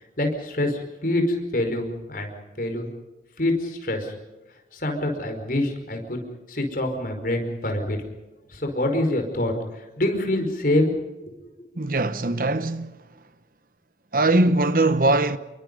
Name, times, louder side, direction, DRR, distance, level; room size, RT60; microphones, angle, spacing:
voice 1, 0.2-2.3 2.6-2.9 3.4-4.1 4.7-6.2 6.5-8.0 8.5-10.9 11.3-11.7, left 1 dB, 50° left, 5.1 m, -26 dB
voice 2, 11.8-12.9 14.1-15.4, right 2 dB, 50° right, 1.1 m, -21 dB
29.0 x 23.0 x 5.4 m
head